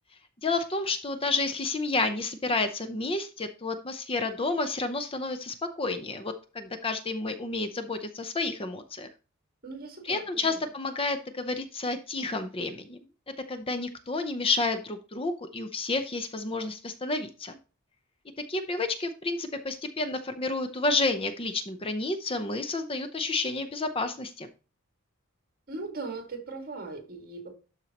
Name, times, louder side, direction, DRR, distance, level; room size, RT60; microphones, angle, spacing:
voice 1, 0.4-9.1 10.1-13.0 13.5-17.6 18.5-24.5, left 3 dB, 25° left, 0.7 m, -30 dB
voice 2, 9.6-10.6 25.7-27.6, right 3 dB, 45° right, 2.1 m, -39 dB
12.0 x 4.5 x 2.9 m
head